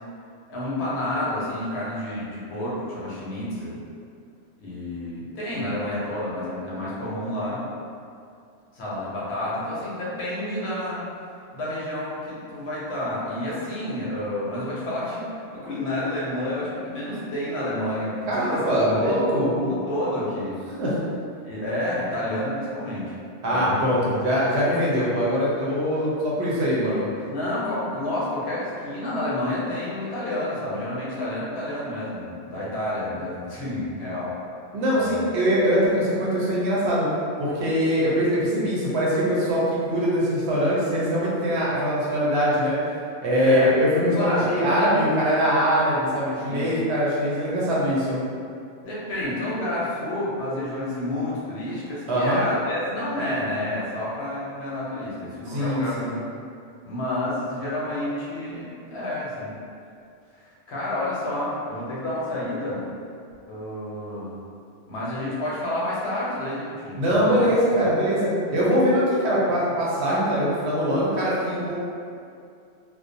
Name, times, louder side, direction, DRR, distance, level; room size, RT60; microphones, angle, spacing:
voice 1, 0.5-3.8 4.6-7.6 8.7-11.0 11.5-20.6 21.4-23.1 23.5-24.1 27.3-34.3 35.0-35.3 43.4-43.7 44.1-45.0 46.5-46.7 48.8-56.0 56.8-59.5 60.3-62.8 63.4-64.4 64.9-67.5, left 1 dB, 65° left, -7 dB, 0.9 m, -29 dB
voice 2, 18.3-19.5 20.8-21.0 23.4-27.1 34.7-37.1 37.4-42.8 43.2-48.2 52.1-52.4 55.5-56.1 67.0-71.8, equal, 65° right, -7 dB, 0.8 m, -22 dB
2.4 x 2.1 x 2.6 m, 2.4 s
omnidirectional pair, 1.2 m